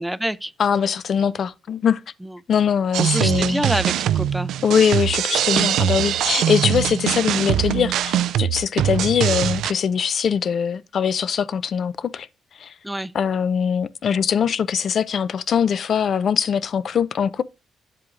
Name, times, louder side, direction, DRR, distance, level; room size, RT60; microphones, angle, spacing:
voice 1, 0.0-0.5 2.2-2.4 3.0-4.5 12.8-13.1, equal, 5° right, 0.5 m, -26 dB
voice 2, 0.6-2.0 2.5-3.6 4.6-12.3 12.6-12.7 13.1-17.4, left 7 dB, 55° left, 0.5 m, -22 dB
sound 1, 2.9-9.7, right 11 dB, 80° right, 0.3 m, -22 dB
9.6 x 7.6 x 2.5 m
cardioid pair, 90°, 0 cm